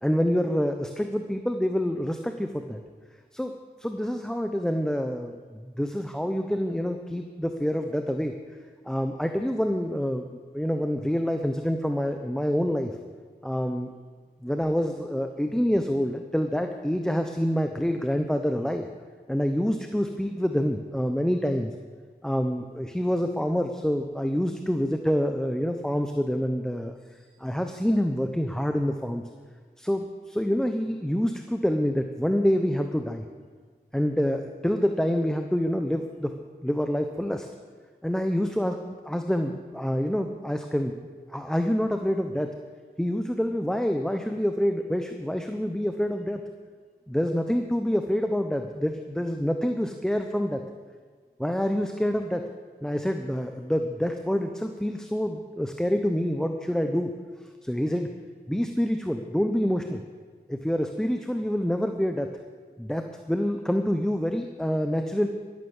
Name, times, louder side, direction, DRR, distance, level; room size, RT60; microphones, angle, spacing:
voice 1, 0.0-2.8 3.3-8.3 8.8-10.3 10.5-12.9 13.4-13.9 14.4-18.8 19.3-21.7 22.2-26.9 27.4-29.2 29.8-33.2 33.9-36.3 36.6-37.5 38.0-38.8 39.0-40.9 41.3-42.5 43.0-46.4 47.1-50.6 51.4-52.4 52.8-57.1 57.6-58.1 58.5-60.0 60.5-62.3 62.8-65.3, equal, 5° left, 5 dB, 0.9 m, -27 dB
13.0 x 11.5 x 7.3 m, 1.5 s
wide cardioid pair, 80°, 17 cm